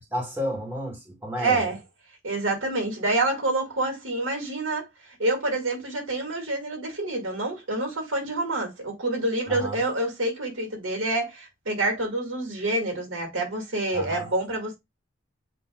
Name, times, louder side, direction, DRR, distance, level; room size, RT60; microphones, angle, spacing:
voice 1, 0.1-1.7 9.5-9.8 13.9-14.3, equal, 10° right, 1.5 m, -31 dB
voice 2, 1.4-1.8 2.2-4.9 5.2-14.8, right 2 dB, 85° right, 2.1 m, -27 dB
7.7 x 2.9 x 2.3 m
head